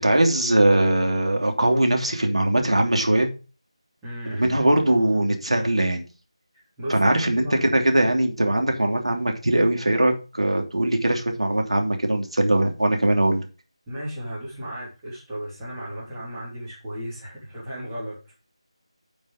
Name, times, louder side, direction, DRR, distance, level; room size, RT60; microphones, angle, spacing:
voice 1, 0.0-3.3 4.3-6.0 6.9-13.4, right 1 dB, 70° right, 3 dB, 3.0 m, -21 dB
voice 2, 4.0-4.6 6.8-7.7 13.9-18.3, equal, 10° right, -14 dB, 3.9 m, -35 dB
10.0 x 5.6 x 5.2 m, 0.33 s
figure-of-eight pair, 165°, 3 cm